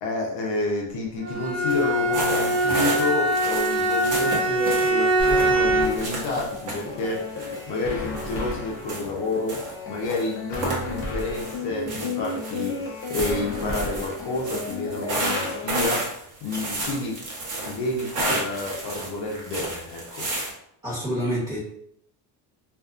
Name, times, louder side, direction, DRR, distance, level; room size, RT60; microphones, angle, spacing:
voice 1, 0.0-17.2 17.6-20.3, left 2 dB, 60° left, -1 dB, 0.8 m, -30 dB
Bowed string instrument, 1.2-6.1, right 1 dB, 75° right, 0.8 m, -22 dB
sound 1, 1.7-1.8 2.1-8.4 8.8-9.7 10.0-11.6 11.9-20.5, right 2 dB, 35° right, 1.0 m, -32 dB
sound 2, 5.2-15.9, left 3 dB, 25° left, 0.7 m, -33 dB
voice 2, 20.8-21.6, equal, 10° right, -8 dB, 1.2 m, -27 dB
2.6 x 2.4 x 2.4 m, 0.72 s
supercardioid pair, 95°, 50 cm